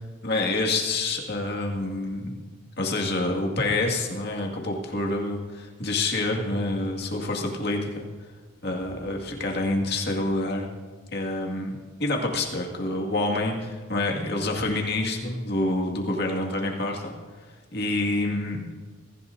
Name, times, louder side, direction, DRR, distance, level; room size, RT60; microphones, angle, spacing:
voice 1, 0.2-2.4 2.8-8.1 8.6-10.7 11.1-17.1 17.7-18.6, left 2 dB, 55° left, 0 dB, 2.1 m, -27 dB
24.0 x 15.0 x 2.7 m, 1.5 s
head